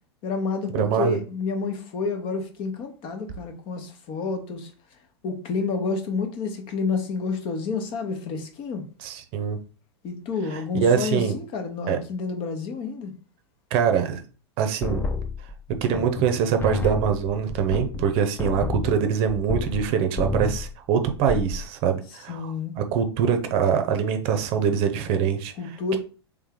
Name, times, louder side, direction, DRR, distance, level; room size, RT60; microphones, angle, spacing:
voice 1, 0.2-4.7 5.2-8.8 10.0-13.1 22.3-22.7 25.6-26.0, left 4 dB, 40° left, 1.1 m, -29 dB
voice 2, 0.7-1.2 9.0-9.6 10.5-11.4 11.9-12.0 13.7-14.2 14.6-15.1 15.8-26.0, right 7 dB, 45° right, 0.7 m, -24 dB
sound 1, 14.8-16.3 16.6-19.9 20.2-20.7 21.1-21.6, left 3 dB, 15° left, 0.6 m, -30 dB
3.4 x 3.2 x 3.7 m
hypercardioid pair, 95°, 14 cm